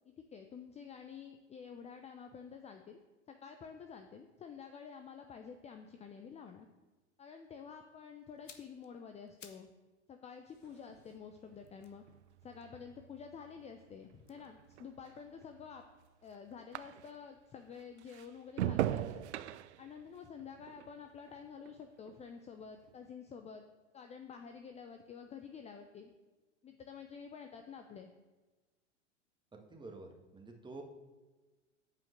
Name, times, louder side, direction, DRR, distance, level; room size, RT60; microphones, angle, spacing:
voice 1, 0.2-3.0 3.3-6.7 7.2-9.7 10.1-12.0 12.4-15.8 16.2-19.2 19.8-23.6 23.9-26.1 26.6-28.1, left 6 dB, 20° left, 5 dB, 0.6 m, -50 dB
sound 1, 8.3-9.8 10.1-13.4 14.2-16.2 16.5-16.7, left 6 dB, 80° left, 1.2 m, -62 dB
sound 2, 10.6-17.4 17.7-22.3 22.6-23.1, right 12 dB, 65° right, 0.6 m, -42 dB
voice 2, 29.5-30.8, right 3 dB, 10° right, 2 dB, 1.8 m, -49 dB
7.7 x 5.8 x 7.8 m, 1.2 s
figure-of-eight pair, 90°, 37 cm